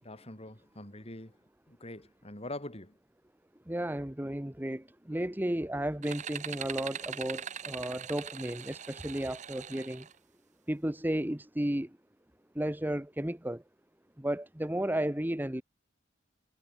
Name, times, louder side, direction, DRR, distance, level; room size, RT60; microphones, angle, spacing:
voice 1, 0.0-1.4 1.7-3.0, left 1 dB, 35° left, 6.1 m, -44 dB
voice 2, 3.7-10.1 10.7-12.0 12.5-13.6 14.2-15.6, right 1 dB, 10° right, 1.1 m, -33 dB
sound 1, 6.0-10.1, right 8 dB, 40° right, 0.8 m, -41 dB
head